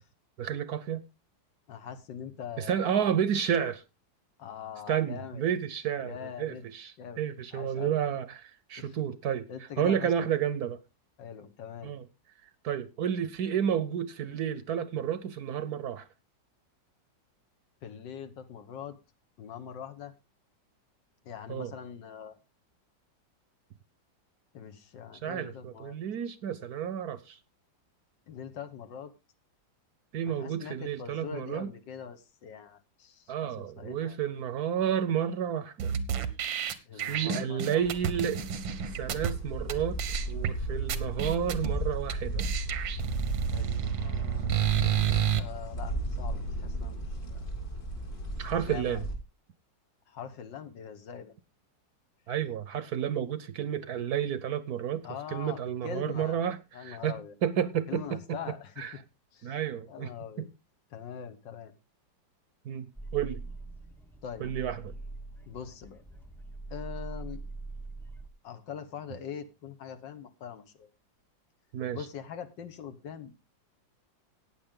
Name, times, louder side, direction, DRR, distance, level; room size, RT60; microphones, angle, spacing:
voice 1, 0.4-1.0 2.6-3.8 4.9-9.5 9.8-10.8 11.8-12.0 12.6-16.1 21.5-21.7 25.2-27.4 30.1-31.7 33.3-35.9 36.9-38.4 38.9-40.0 40.3-42.4 48.4-49.0 52.3-58.4 58.8-58.9 59.4-60.1 60.4-60.5 62.6-62.9 63.1-63.4 64.4-65.0 71.7-72.0, right 9 dB, 65° right, 1.1 m, -31 dB
voice 2, 1.7-3.0 4.4-5.4 6.0-6.7 7.0-7.2 7.5-8.0 8.8-9.0 9.5-10.1 11.2-11.9 17.8-19.0 19.4-20.1 21.3-22.4 24.5-26.0 28.3-29.1 30.3-34.2 36.9-37.8 43.5-47.0 47.3-47.5 48.5-49.0 50.1-51.3 55.0-56.4 56.7-57.4 57.9-58.8 59.3-59.6 59.9-60.5 60.9-61.7 64.2-64.5 65.5-66.0 66.7-67.4 68.4-70.9 71.9-73.5, left 8 dB, 70° left, 1.8 m, -43 dB
sound 1, 35.8-39.3 39.7-39.8 40.0-40.5 40.9-41.7 42.1-42.2 42.4-45.4, right 9 dB, 90° right, 1.8 m, -30 dB
sound 2, 37.8-49.1, right 1 dB, 50° left, 3.2 m, -35 dB
sound 3, 63.0-68.3, right 3 dB, 5° left, 0.3 m, -42 dB
14.5 x 9.1 x 3.7 m
omnidirectional pair, 2.0 m